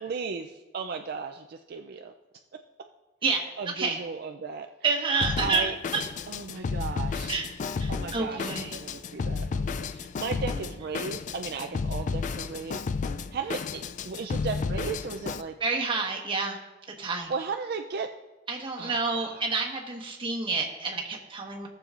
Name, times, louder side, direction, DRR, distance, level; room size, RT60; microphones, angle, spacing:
voice 1, 0.0-2.1 3.6-4.7 5.4-5.7 6.3-7.4 7.9-12.8 13.3-15.5 17.3-18.1 18.8-19.4, right 5 dB, 55° right, 4 dB, 0.4 m, -35 dB
voice 2, 4.8-6.0 7.3-7.5 7.8-8.8 15.6-16.6 17.0-17.3 18.5-21.7, right 4 dB, 30° right, 0 dB, 1.3 m, -29 dB
Drum kit, 5.2-15.4, left 5 dB, 40° left, 0.3 m, -32 dB
17.5 x 6.9 x 2.5 m, 1.1 s
head